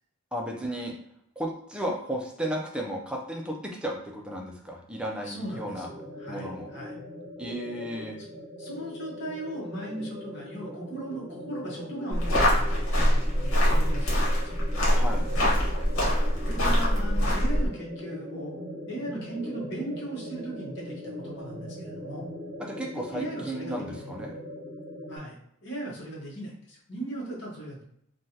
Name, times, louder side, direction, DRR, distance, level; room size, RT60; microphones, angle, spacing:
voice 1, 0.3-1.0 1.4-5.9 6.3-6.7 7.4-8.2 14.9-15.2 22.6-24.3, equal, 5° right, -1 dB, 0.4 m, -34 dB
voice 2, 5.2-6.9 8.6-14.4 16.4-18.6 18.9-22.3 23.1-24.0 25.1-27.8, right 1 dB, 55° left, -4 dB, 1.1 m, -38 dB
sound 1, 5.4-25.2, equal, 45° right, 0.7 m, -41 dB
sound 2, 12.1-17.7, equal, 75° left, 1.2 m, -24 dB
3.2 x 2.3 x 2.8 m, 0.72 s
head